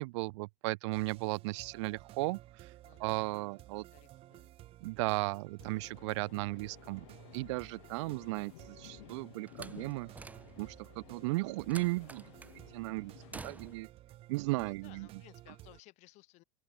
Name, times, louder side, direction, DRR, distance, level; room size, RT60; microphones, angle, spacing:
voice 1, 0.0-2.7 3.0-3.8 4.8-7.1 7.3-10.1 10.6-12.2 12.7-13.9 14.3-15.1, right 23 dB, 70° right, 0.4 m, -35 dB
sound 1, 0.9-15.8, right 15 dB, 40° right, 2.5 m, -55 dB
voice 2, 2.8-3.4 3.7-4.6 14.5-16.4, left 21 dB, 45° left, 5.3 m, -59 dB
sound 2, 5.6-13.8, left 19 dB, 80° left, 1.7 m, -56 dB
Slam, 9.5-10.8 11.7-12.6 13.3-14.0, right 3 dB, 10° right, 2.7 m, -49 dB
open air
supercardioid pair, 150°, 16 cm